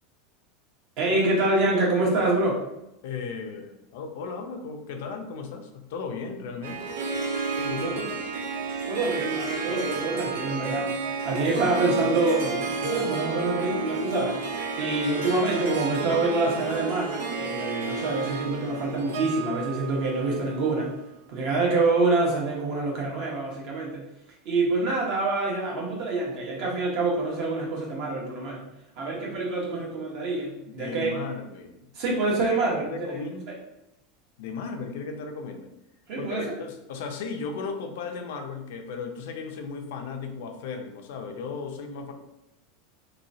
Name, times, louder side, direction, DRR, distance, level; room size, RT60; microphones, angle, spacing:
voice 1, 1.0-2.6 7.7-8.1 8.9-14.4 14.8-20.9 21.3-24.0 24.4-28.6 29.0-31.1 31.9-33.2 36.1-36.5, right 2 dB, 50° right, -2 dB, 1.1 m, -26 dB
voice 2, 3.0-6.9 7.6-8.0 30.7-31.8 32.9-33.5 34.4-35.7 36.2-42.1, left 5 dB, 70° left, 4 dB, 0.5 m, -35 dB
Harp, 6.6-21.1, right 4 dB, 85° right, 0.5 m, -31 dB
3.1 x 3.0 x 2.7 m, 0.88 s
supercardioid pair, 160°, 0 cm